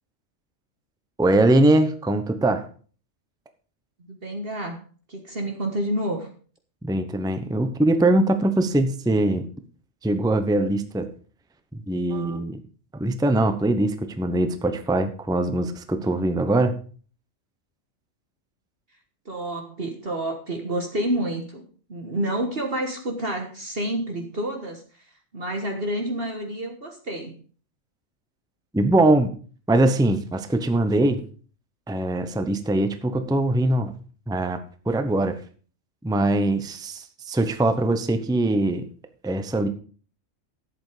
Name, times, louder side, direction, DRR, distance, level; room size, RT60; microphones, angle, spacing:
voice 1, 1.2-2.7 6.8-9.5 10.0-11.0 11.7-12.6 13.0-16.7 28.7-29.3 29.7-31.2 31.9-33.9 34.3-34.6 34.9-35.3 36.0-38.8 39.2-39.7, right 2 dB, 5° right, 9 dB, 0.8 m, -22 dB
voice 2, 4.1-4.8 5.1-6.3 19.2-21.6 21.9-25.0 25.3-27.3, right 1 dB, 45° right, 3 dB, 1.7 m, -29 dB
11.5 x 8.2 x 5.0 m, 0.41 s
omnidirectional pair, 1.4 m